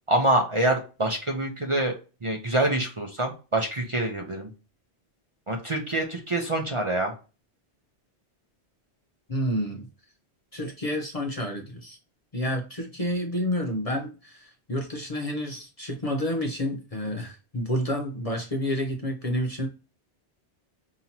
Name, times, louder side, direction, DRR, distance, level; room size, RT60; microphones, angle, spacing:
voice 1, 0.1-1.9 2.2-4.5 5.5-7.1, right 1 dB, 30° right, 1 dB, 0.7 m, -26 dB
voice 2, 9.3-9.9 10.5-12.0 12.3-19.7, equal, 35° left, 1 dB, 0.7 m, -29 dB
5.5 x 2.9 x 2.8 m, 0.32 s
omnidirectional pair, 1.2 m